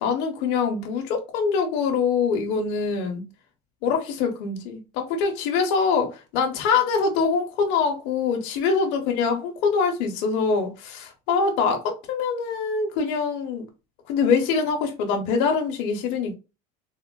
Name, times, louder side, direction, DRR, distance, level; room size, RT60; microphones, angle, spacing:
voice 1, 0.0-3.2 3.8-13.6 14.1-16.4, left 5 dB, 65° left, 0.7 m, -24 dB
3.6 x 2.1 x 2.2 m
cardioid pair, 140°, 20 cm